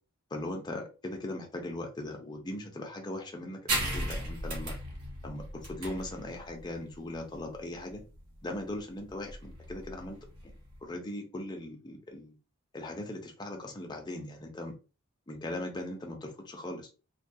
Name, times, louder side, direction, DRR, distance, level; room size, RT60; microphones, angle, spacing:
voice 1, 0.3-4.8 5.2-8.0 8.4-10.2 10.4-10.5 10.8-12.4 12.7-14.7 15.3-16.9, left 1 dB, 20° left, 0.5 m, -39 dB
sound 1, 3.7-10.8, right 1 dB, 80° right, 0.9 m, -37 dB
2.2 x 2.2 x 2.6 m
head